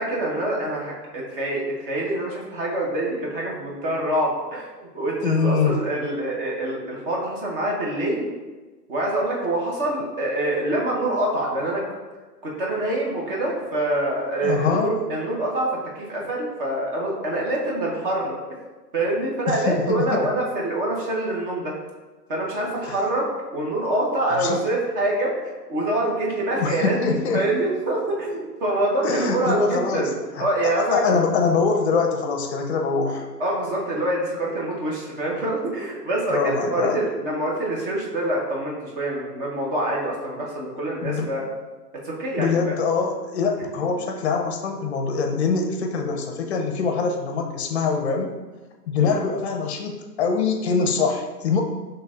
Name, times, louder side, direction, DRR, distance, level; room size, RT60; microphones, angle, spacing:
voice 1, 0.0-4.6 4.9-8.3 8.9-11.8 12.4-15.7 15.9-18.4 18.9-21.7 22.3-27.0 27.3-30.1 30.4-31.2 33.4-41.5 42.0-42.7 49.0-49.2, right 1 dB, 35° right, -3 dB, 0.9 m, -25 dB
voice 2, 5.2-5.8 14.4-15.0 19.5-20.3 22.8-23.0 24.3-24.6 26.5-27.5 29.0-30.1 30.4-33.3 36.3-37.0 41.0-41.3 42.4-48.3 48.9-51.6, left 5 dB, 45° left, 3 dB, 0.6 m, -24 dB
5.6 x 3.3 x 2.4 m, 1.3 s
hypercardioid pair, 150°, 49 cm